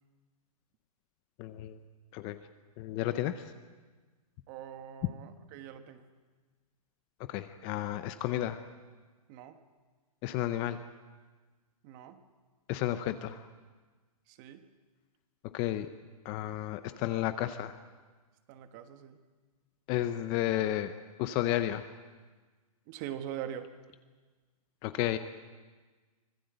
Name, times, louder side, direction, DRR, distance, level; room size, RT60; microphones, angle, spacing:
voice 1, 1.4-1.8 2.1-2.4 2.8-3.3 7.3-8.6 10.2-10.8 12.7-13.4 15.5-15.9 16.2-17.7 19.9-20.9 21.2-21.8 24.8-25.2, left 13 dB, 20° left, 11 dB, 0.7 m, -32 dB
voice 2, 4.5-6.1 9.3-9.6 11.8-12.2 14.3-14.6 18.5-19.2 22.9-23.7, right 10 dB, 30° right, 9 dB, 1.4 m, -43 dB
25.0 x 17.5 x 8.0 m, 1.4 s
hypercardioid pair, 155°, 19 cm